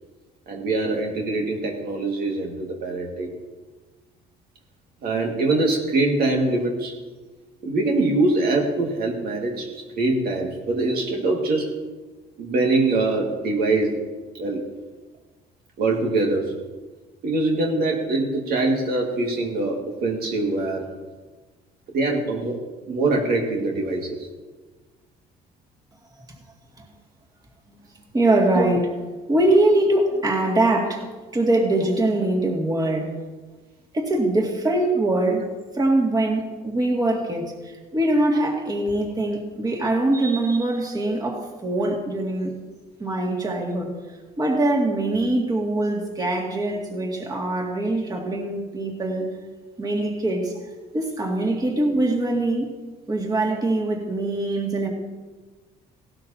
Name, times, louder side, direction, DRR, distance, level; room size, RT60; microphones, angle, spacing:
voice 1, 0.5-3.3 5.0-6.9 7.6-11.7 12.4-14.0 14.3-14.6 15.8-16.5 17.2-20.9 21.9-22.6 22.9-24.3 28.5-28.7, right 2 dB, 65° right, 0 dB, 2.0 m, -23 dB
voice 2, 28.1-28.9 29.3-31.1 31.3-33.1 33.9-35.5 35.7-42.6 43.0-44.0 44.4-49.3 49.8-50.6 50.9-52.7 53.1-54.9, right 2 dB, 20° right, -1 dB, 2.3 m, -23 dB
17.0 x 12.0 x 2.9 m, 1.3 s
cardioid pair, 110°, 17 cm